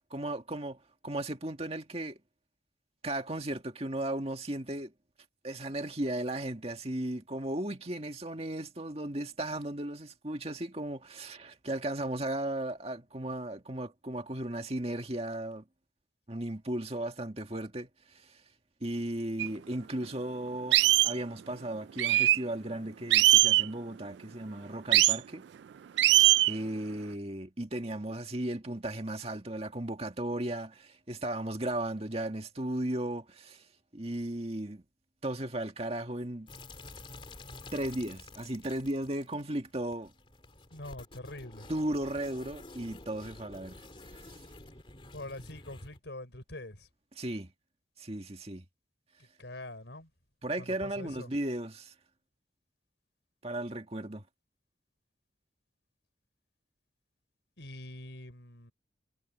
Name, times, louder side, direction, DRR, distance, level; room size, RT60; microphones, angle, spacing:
voice 1, 0.1-2.2 3.0-4.9 5.4-15.6 16.3-18.4 18.8-25.5 26.4-33.6 33.9-34.8 35.2-36.5 37.7-40.1 41.7-43.8 44.1-44.4 47.2-47.5 48.0-48.6 50.4-51.9 53.4-54.2, right 1 dB, 35° right, 2.0 m, -36 dB
sound 1, 19.4-19.5 20.0-20.1 20.7-21.1 22.0-22.4 23.1-23.7 24.9-25.2 26.0-26.5, right 15 dB, 70° right, 0.3 m, -21 dB
sound 2, 36.5-46.0, left 2 dB, 30° left, 3.0 m, -50 dB
voice 2, 40.7-41.7 45.1-46.9 49.4-50.1 50.6-51.3 57.6-58.7, left 1 dB, 75° left, 4.7 m, -44 dB
head